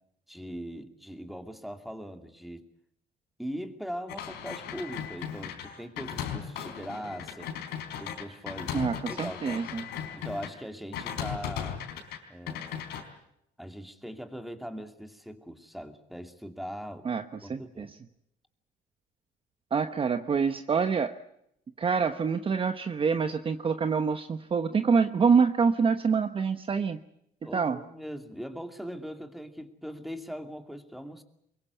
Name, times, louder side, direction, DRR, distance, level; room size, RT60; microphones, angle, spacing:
voice 1, 0.3-2.7 3.4-7.5 8.0-9.6 10.1-11.8 12.3-12.9 13.6-17.1 17.4-17.9 27.4-31.2, equal, ahead, 6 dB, 2.6 m, -40 dB
sound 1, 4.1-10.5 10.9-12.2 12.5-13.0, left 9 dB, 90° left, 4.2 m, -37 dB
voice 2, 8.7-9.8 17.0-17.9 19.7-21.2 21.8-27.0 27.5-27.8, right 5 dB, 30° right, 8 dB, 1.0 m, -26 dB
24.0 x 22.0 x 8.4 m, 0.77 s
cardioid pair, 110°, 17 cm